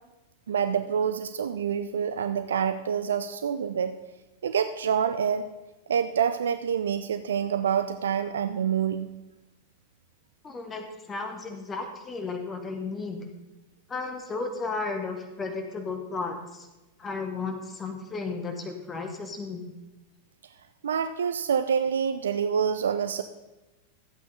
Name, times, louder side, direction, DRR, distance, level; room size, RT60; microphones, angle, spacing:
voice 1, 0.5-4.0 4.4-5.5 5.9-9.1 20.8-23.2, right 7 dB, 65° right, 11 dB, 0.4 m, -27 dB
voice 2, 10.4-13.2 13.9-16.7 17.0-19.7, left 4 dB, 20° left, 5 dB, 1.2 m, -34 dB
13.0 x 8.3 x 4.1 m, 1.1 s
figure-of-eight pair, 90°, 0 cm